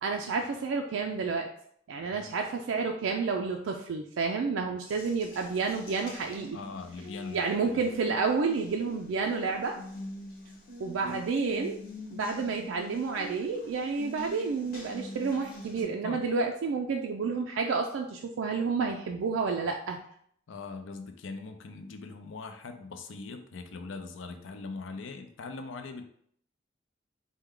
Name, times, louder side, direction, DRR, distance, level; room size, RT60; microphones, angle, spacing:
voice 1, 0.0-1.5 1.9-6.6 7.3-9.8 10.8-11.8 12.1-20.0, right 4 dB, 90° right, 3 dB, 0.3 m, -30 dB
voice 2, 2.0-2.3 6.5-7.4 7.7-7.8 11.0-11.2 16.0-16.2 20.5-26.0, left 4 dB, 85° left, 7 dB, 0.5 m, -41 dB
Water tap faucet, 4.9-15.8, left 1 dB, 50° left, 0.8 m, -45 dB
4.4 x 2.2 x 3.7 m, 0.65 s
head